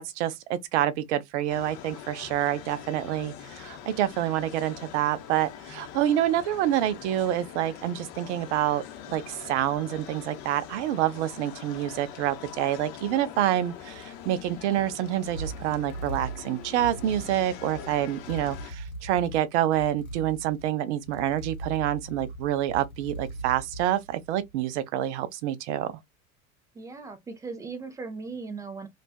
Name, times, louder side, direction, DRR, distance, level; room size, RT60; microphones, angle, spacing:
voice 1, 0.0-25.9, right 12 dB, 55° right, 0.6 m, -27 dB
sound 1, 1.5-18.7, left 9 dB, 45° left, 0.8 m, -43 dB
sound 2, 14.0-24.6, right 2 dB, 80° left, 1.1 m, -40 dB
voice 2, 26.7-28.9, right 4 dB, 10° right, 0.4 m, -38 dB
2.5 x 2.3 x 2.2 m
hypercardioid pair, 90°, 42 cm